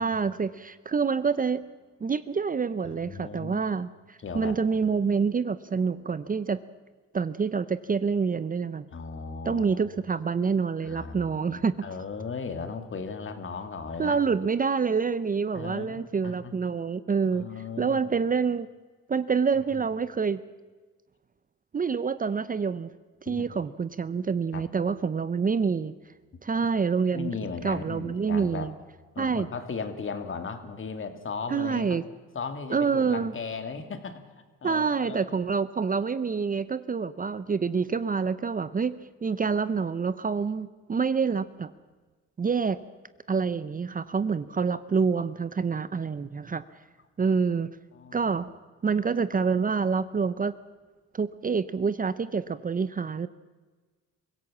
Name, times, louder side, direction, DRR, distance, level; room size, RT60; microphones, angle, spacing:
voice 1, 0.0-1.6 2.0-6.6 7.1-8.9 9.4-11.7 14.0-17.4 17.8-18.7 19.1-20.4 21.7-22.9 23.2-25.9 26.4-27.3 27.6-28.7 29.2-29.5 31.5-32.0 32.7-33.3 34.6-41.7 42.4-42.8 43.3-46.6 47.2-47.7 48.1-48.5 48.8-50.5 51.1-53.3, right 5 dB, 30° right, 14 dB, 0.7 m, -27 dB
voice 2, 2.9-3.6 4.2-4.6 8.9-9.8 10.8-14.2 15.5-16.5 17.3-18.2 19.7-19.8 23.2-23.5 24.5-24.7 27.1-28.7 29.1-32.0 32.3-34.2 34.6-35.3 47.9-48.3, left 5 dB, 40° left, 7 dB, 2.5 m, -37 dB
24.0 x 16.5 x 7.4 m, 1.4 s
cardioid pair, 90°, 30 cm